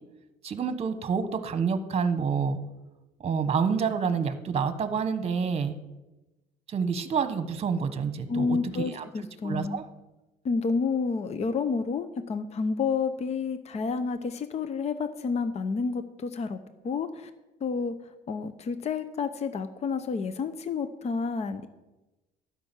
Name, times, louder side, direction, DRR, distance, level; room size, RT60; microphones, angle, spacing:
voice 1, 0.4-2.6 3.2-5.8 6.7-9.0 9.4-9.8, right 6 dB, 35° right, 10 dB, 1.2 m, -28 dB
voice 2, 8.3-9.8 10.4-16.6 16.8-17.3 17.6-17.9 18.3-21.7, left 5 dB, 40° left, 10 dB, 0.8 m, -30 dB
12.5 x 6.0 x 9.0 m, 1.0 s
cardioid pair, 110°, 17 cm